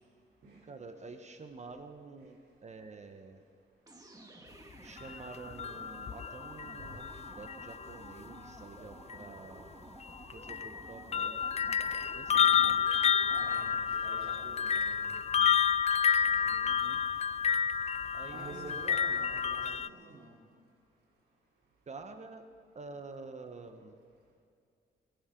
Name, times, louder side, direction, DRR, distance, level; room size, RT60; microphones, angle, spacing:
voice 1, 0.7-3.4 4.8-9.7 10.3-11.4 12.1-12.9 16.6-17.0 18.1-18.8 21.9-22.4 22.7-24.0, right 4 dB, 40° right, 7 dB, 1.2 m, -48 dB
sound 1, 3.9-13.7, right 1 dB, 20° right, 2.0 m, -52 dB
sound 2, 5.0-8.1 9.1-9.2 10.0-19.9, left 7 dB, 35° left, 0.4 m, -30 dB
voice 2, 13.3-15.4 16.2-16.7 18.3-20.3, right 3 dB, 80° right, -7 dB, 4.0 m, -49 dB
23.5 x 15.5 x 3.9 m, 2.3 s
cardioid pair, 95°, 18 cm